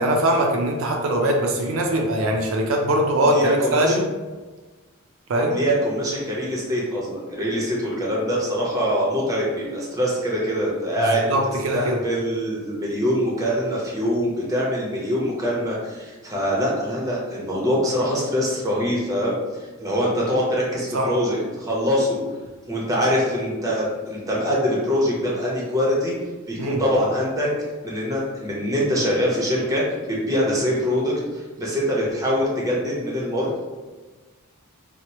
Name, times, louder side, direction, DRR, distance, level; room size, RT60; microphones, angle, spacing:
voice 1, 0.0-4.0 5.3-5.6 11.0-12.0 20.9-21.1 26.6-26.8, right 1 dB, 70° right, 1 dB, 0.4 m, -22 dB
voice 2, 3.2-4.0 5.5-19.4 19.8-22.2 22.7-26.1 26.5-27.5 27.8-33.6, equal, 15° right, -4 dB, 0.7 m, -24 dB
2.9 x 2.0 x 4.1 m, 1.3 s
head